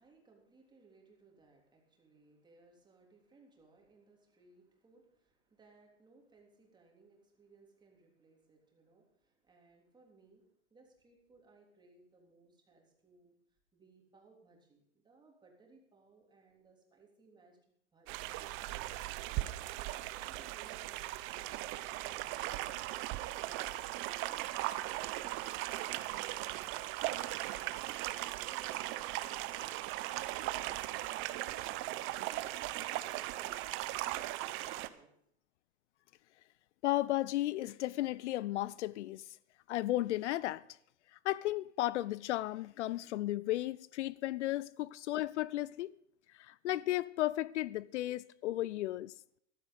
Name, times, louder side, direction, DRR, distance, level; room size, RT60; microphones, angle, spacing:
voice 1, 0.0-13.3 13.7-19.6 20.2-24.5 28.3-32.4 32.8-35.1, right 3 dB, 10° right, 3.4 m, -63 dB
sound 1, 18.1-34.9, right 16 dB, 35° right, 0.8 m, -38 dB
voice 2, 36.8-39.2 39.7-40.6 41.2-45.9 46.4-49.1, left 15 dB, 75° left, 0.5 m, -34 dB
14.5 x 12.5 x 5.4 m
supercardioid pair, 140°, 35 cm